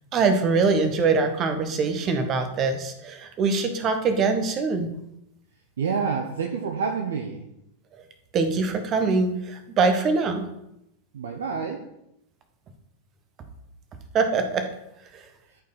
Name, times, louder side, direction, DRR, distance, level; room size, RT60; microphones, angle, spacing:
voice 1, 0.1-4.9 8.3-10.5 14.1-14.6 15.1-15.2, right 4 dB, 30° right, 7 dB, 1.4 m, -23 dB
voice 2, 5.8-7.5 11.1-11.9, right 5 dB, 65° right, 4 dB, 0.9 m, -28 dB
13.5 x 5.3 x 4.1 m, 0.82 s
figure-of-eight pair, 90°, 0 cm